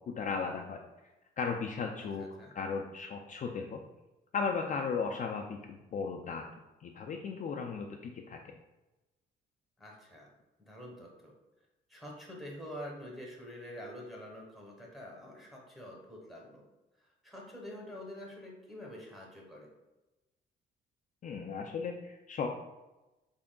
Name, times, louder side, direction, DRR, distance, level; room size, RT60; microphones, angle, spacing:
voice 1, 0.1-0.8 1.4-3.8 4.3-6.4 6.8-8.4 21.2-22.5, left 5 dB, 40° left, 1 dB, 0.4 m, -36 dB
voice 2, 2.2-2.5 9.8-10.3 10.6-11.3 11.9-16.6 17.2-19.7, equal, ahead, -2 dB, 1.1 m, -46 dB
3.6 x 3.5 x 2.2 m, 1.0 s
cardioid pair, 90°, 20 cm